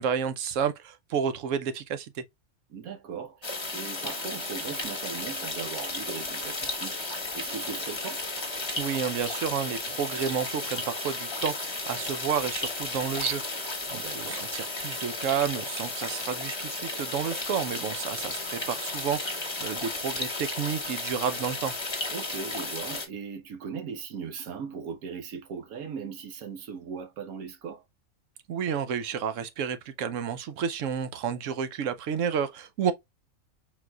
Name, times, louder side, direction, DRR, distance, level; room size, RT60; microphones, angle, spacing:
voice 1, 0.0-2.1 8.7-21.7 28.5-32.9, right 7 dB, 70° right, 1.0 m, -31 dB
voice 2, 2.7-8.3 13.9-14.4 22.1-27.8, right 6 dB, 90° right, 1.3 m, -39 dB
sound 1, 3.4-23.1, left 2 dB, 20° left, 1.0 m, -34 dB
4.6 x 3.9 x 2.2 m
omnidirectional pair, 1.5 m